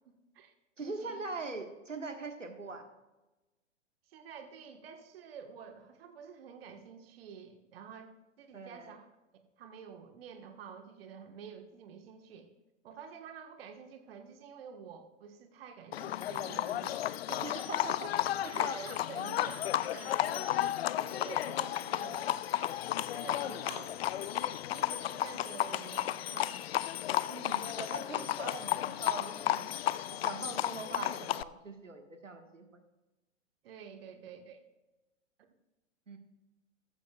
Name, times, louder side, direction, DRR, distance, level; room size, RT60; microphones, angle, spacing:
voice 1, 0.0-0.5 0.8-1.2 4.1-9.1 9.6-12.5 12.8-17.6 18.4-19.7 19.9-20.5 21.0-22.3 23.1-26.6 33.6-34.6, right 6 dB, 50° right, 6 dB, 1.5 m, -49 dB
voice 2, 0.8-2.8 8.5-9.0 17.4-18.1 18.4-18.9 19.2-19.4 27.3-29.7 30.1-32.7 36.1-36.2, right 3 dB, 90° right, 5 dB, 1.6 m, -42 dB
Livestock farm animals working animals, 15.9-31.4, left 12 dB, 55° left, 0.5 m, -33 dB
14.5 x 14.0 x 2.4 m, 1.1 s
figure-of-eight pair, 110°, 36 cm